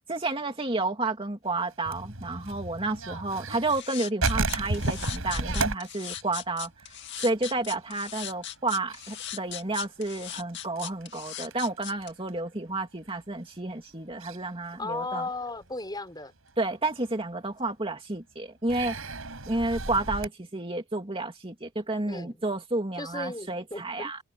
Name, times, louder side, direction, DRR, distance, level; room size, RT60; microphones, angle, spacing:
voice 1, 0.1-6.7 7.2-15.3 16.6-19.0 19.5-24.2, right 2 dB, 25° right, 2.7 m, -31 dB
sound 1, 1.7-3.9 4.2-7.5 7.7-7.8 8.2-8.6 8.9-12.3 13.1-13.2 14.2-14.4 15.0-15.6 16.2-16.3 17.6-17.7 18.7-20.3, right 2 dB, 80° right, 5.0 m, -33 dB
sound 2, 3.7-12.1, left 11 dB, 55° left, 2.4 m, -38 dB
voice 2, 14.8-16.3 22.1-22.4 23.0-24.1, left 2 dB, 20° left, 5.1 m, -35 dB
head